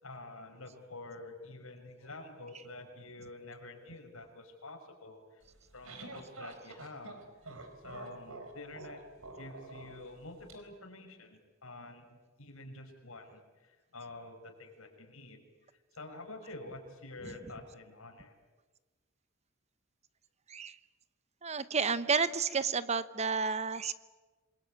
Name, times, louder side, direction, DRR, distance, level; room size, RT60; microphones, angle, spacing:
voice 1, 0.0-5.4 5.7-7.2 7.8-9.0 9.4-15.4 15.9-18.3, left 2 dB, 85° left, 4 dB, 5.8 m, -48 dB
sound 1, 5.4-10.5, right 2 dB, 85° right, 4.3 m, -48 dB
voice 2, 21.4-23.9, right 5 dB, 30° right, 14 dB, 0.9 m, -31 dB
27.5 x 21.5 x 8.9 m, 1.3 s
head